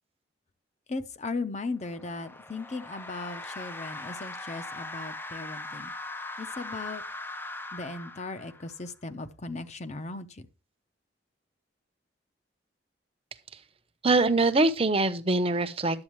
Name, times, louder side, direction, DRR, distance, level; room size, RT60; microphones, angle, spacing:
voice 1, 0.9-5.9 6.4-7.0 7.7-10.5, left 3 dB, 40° left, 0.9 m, -37 dB
sound 1, 1.8-8.9, left 2 dB, 10° left, 0.5 m, -40 dB
voice 2, 14.0-16.0, right 2 dB, 35° right, 0.9 m, -23 dB
11.5 x 8.3 x 3.1 m
head